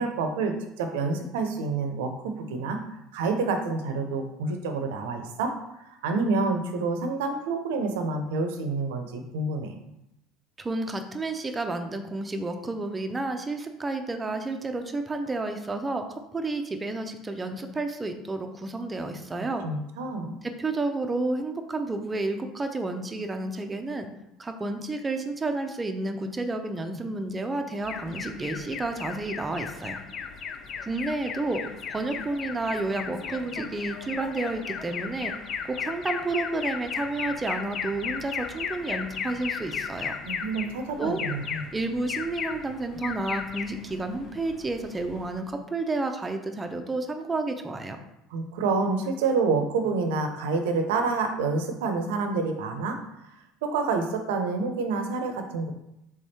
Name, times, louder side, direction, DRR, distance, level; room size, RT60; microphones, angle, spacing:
voice 1, 0.0-2.8 3.1-5.5 5.9-9.8 19.6-20.3 40.2-41.7 48.3-53.0 53.6-55.7, right 4 dB, 85° right, 5 dB, 0.6 m, -28 dB
voice 2, 10.6-19.6 20.6-24.1 24.4-30.0 30.8-31.6 31.9-35.3 35.6-40.1 41.0-41.2 41.7-48.0, right 2 dB, 20° right, 6 dB, 0.6 m, -31 dB
Alarm, 27.8-45.5, left 6 dB, 45° left, 0.4 m, -36 dB
3.5 x 3.3 x 4.2 m, 0.85 s
supercardioid pair, 95°, 0 cm